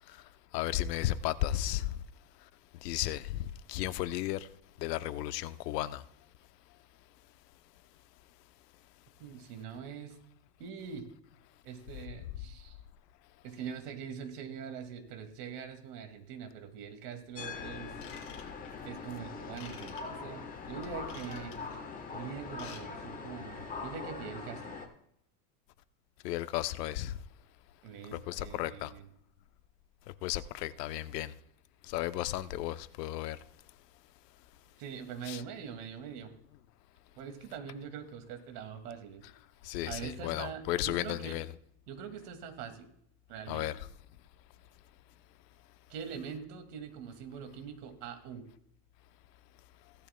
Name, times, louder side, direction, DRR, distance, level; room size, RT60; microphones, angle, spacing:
voice 1, 0.5-2.0 2.8-4.5 4.8-6.0 26.2-27.2 28.1-28.9 30.2-31.3 31.9-33.4 35.3-35.4 39.6-41.4 43.5-43.8, left 14 dB, 90° left, 0.8 m, -34 dB
voice 2, 9.2-10.2 10.6-11.1 11.6-12.8 13.4-17.9 18.8-21.6 22.1-24.7 27.8-29.1 34.8-36.3 37.2-39.2 39.8-41.4 41.9-42.9 43.3-43.7 45.9-48.5, right 7 dB, 70° right, 2.3 m, -43 dB
sound 1, 17.3-24.9, left 4 dB, 20° left, 1.1 m, -42 dB
Ratchet pawl / Tools, 17.9-18.9 19.6-20.0 20.8-21.7 22.4-22.8 23.1-23.3 23.8-23.9, left 7 dB, 40° left, 3.5 m, -50 dB
17.0 x 12.5 x 2.2 m
supercardioid pair, 155°, 47 cm